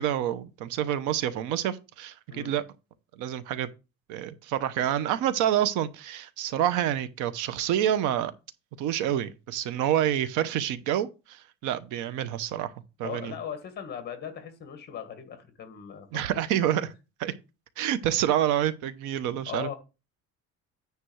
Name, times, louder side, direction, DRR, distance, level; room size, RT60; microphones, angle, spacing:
voice 1, 0.0-2.6 3.2-3.7 4.1-8.3 8.8-12.7 13.0-13.3 16.1-16.9 17.2-17.3 17.8-19.7, right 11 dB, 90° right, 1.0 m, -28 dB
voice 2, 13.0-16.7 19.2-19.7, left 8 dB, 35° left, 1.9 m, -39 dB
9.7 x 3.4 x 6.3 m
cardioid pair, 175°, 30 cm